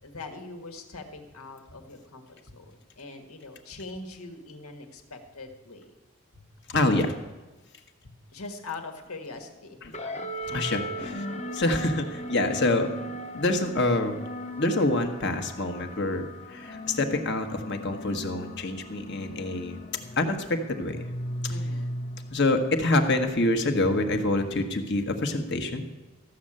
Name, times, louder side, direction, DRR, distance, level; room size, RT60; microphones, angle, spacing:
voice 1, 0.0-5.9 8.3-10.6 11.0-11.1 21.5-21.9, left 3 dB, 85° left, 5 dB, 1.7 m, -42 dB
voice 2, 6.7-7.1 10.5-11.2 11.5-12.9 13.3-14.2 14.6-16.3 16.5-19.8 20.2-21.0 22.3-25.8, left 2 dB, 50° left, 6 dB, 1.3 m, -26 dB
sound 1, 9.9-24.7, equal, 30° left, 0.9 m, -38 dB
14.0 x 6.5 x 8.7 m, 1.2 s
head